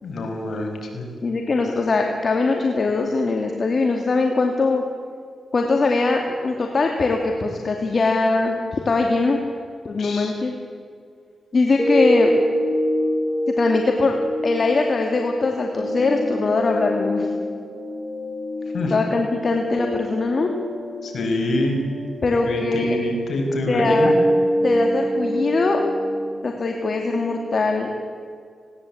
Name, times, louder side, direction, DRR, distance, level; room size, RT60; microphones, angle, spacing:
voice 1, 0.0-1.1 10.0-10.3 18.7-19.0 21.0-21.8 22.4-24.1, left 1 dB, 70° left, 3 dB, 5.5 m, -25 dB
voice 2, 1.2-4.8 5.5-9.4 9.8-10.5 11.5-12.3 13.6-14.2 14.4-17.3 18.9-20.5 22.2-23.0 23.7-24.1 24.6-25.8 26.4-27.9, left 3 dB, 55° left, 2 dB, 2.4 m, -21 dB
sound 1, 11.8-27.8, equal, 5° left, 4.2 m, -25 dB
19.5 x 18.0 x 8.6 m, 2.2 s
cardioid pair, 60°, 0 cm